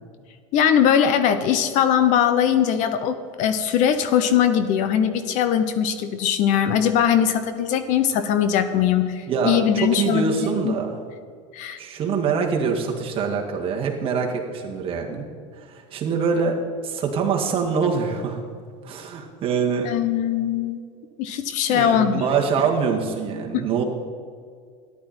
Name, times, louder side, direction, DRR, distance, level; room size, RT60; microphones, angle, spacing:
voice 1, 0.5-10.3 10.6-10.8 11.5-11.8 19.8-20.8 21.2-22.3 23.5-23.8, left 9 dB, 50° left, 11 dB, 0.9 m, -21 dB
voice 2, 9.3-11.0 11.8-15.2 15.5-16.6 16.8-18.4 18.8-19.9 21.7-23.8, right 5 dB, 35° right, 1 dB, 2.0 m, -24 dB
13.5 x 11.0 x 4.4 m, 2.1 s
supercardioid pair, 130°, 17 cm